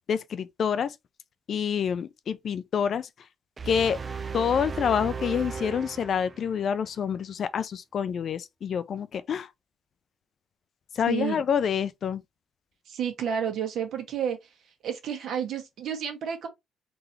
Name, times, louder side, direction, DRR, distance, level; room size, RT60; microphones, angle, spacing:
voice 1, 0.1-0.9 1.5-3.1 3.7-4.0 4.3-9.5 10.9-12.2, left 7 dB, 60° left, 0.5 m, -27 dB
sound 1, 3.6-6.8, right 5 dB, 35° right, 0.5 m, -36 dB
voice 2, 11.1-11.4 12.9-14.4 14.8-16.5, right 8 dB, 70° right, 1.5 m, -30 dB
3.9 x 2.8 x 3.3 m
cardioid pair, 90°, 0 cm